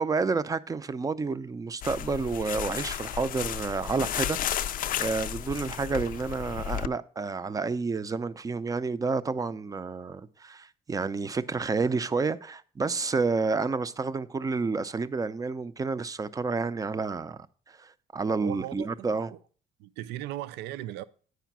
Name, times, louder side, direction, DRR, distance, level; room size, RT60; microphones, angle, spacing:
voice 1, 0.0-4.7 5.0-17.4 17.7-19.3, right 4 dB, 20° right, 0.5 m, -30 dB
sound 1, 1.8-6.9, left 10 dB, 55° left, 0.4 m, -33 dB
voice 2, 18.4-19.4 19.8-21.0, right 14 dB, 85° right, 0.4 m, -37 dB
9.2 x 5.0 x 5.9 m
cardioid pair, 110°, 17 cm